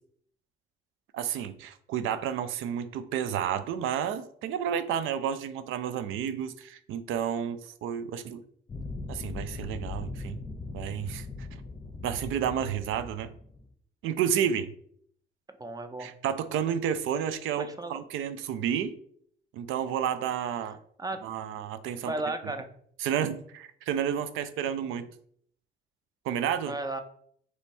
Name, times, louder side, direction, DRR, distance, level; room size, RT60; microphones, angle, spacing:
voice 1, 1.1-8.4 9.1-10.4 10.7-11.5 12.0-13.3 14.0-14.7 16.0-18.9 19.5-20.8 21.2-22.1 23.0-25.1 26.2-26.8, right 9 dB, 90° right, 11 dB, 0.5 m, -31 dB
sound 1, 8.7-13.7, left 3 dB, 20° left, 0.8 m, -39 dB
voice 2, 15.6-16.1 17.6-18.0 21.0-21.2 22.0-22.7 26.6-27.0, right 2 dB, 20° right, 7 dB, 0.6 m, -34 dB
3.4 x 3.1 x 4.2 m, 0.63 s
cardioid pair, 90°, 20 cm